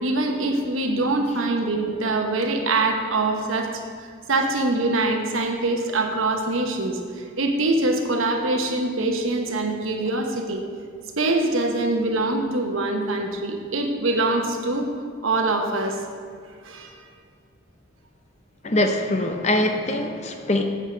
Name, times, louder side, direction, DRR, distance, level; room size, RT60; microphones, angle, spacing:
voice 1, 0.0-3.8 4.3-10.6 11.2-14.9 15.2-16.0 16.6-16.9, right 2 dB, 85° right, 3 dB, 1.0 m, -24 dB
voice 2, 18.6-20.6, left 1 dB, 35° left, 5 dB, 0.6 m, -23 dB
8.1 x 4.7 x 7.0 m, 2.1 s
head